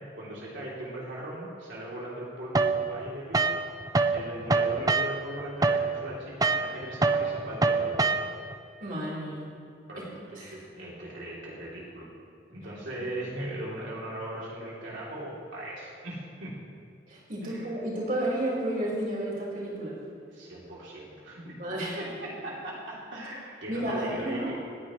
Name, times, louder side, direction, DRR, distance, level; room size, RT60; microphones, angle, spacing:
voice 1, 0.0-3.6 4.1-8.3 9.9-12.1 12.5-16.5 17.4-17.7 20.3-21.5 22.0-24.4, right 1 dB, 85° right, -6 dB, 3.1 m, -39 dB
sound 1, 2.5-4.2 4.5-8.6, right 3 dB, 20° right, 0.5 m, -25 dB
voice 2, 8.8-9.4 10.4-10.5 17.1-20.0 21.6-22.0 23.7-24.5, right 1 dB, 45° right, -5 dB, 4.2 m, -31 dB
28.5 x 9.9 x 3.2 m, 2.3 s
head